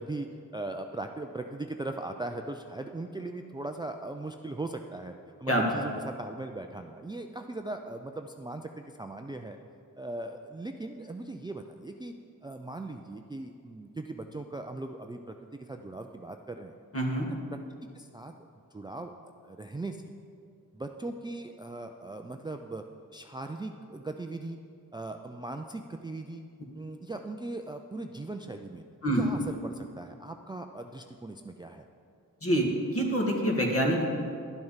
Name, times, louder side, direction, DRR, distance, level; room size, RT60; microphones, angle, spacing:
voice 1, 0.0-9.6 10.0-12.1 12.4-16.7 17.2-17.4 17.9-18.3 18.7-19.1 19.4-20.0 20.7-22.8 23.1-24.6 24.9-26.4 26.7-28.8 29.2-31.8, right 2 dB, 15° right, 5 dB, 0.4 m, -39 dB
voice 2, 16.9-17.3 29.0-29.2 32.4-34.1, right 1 dB, 40° left, 0 dB, 1.9 m, -26 dB
12.0 x 7.7 x 5.7 m, 2.4 s
wide cardioid pair, 100°, 34 cm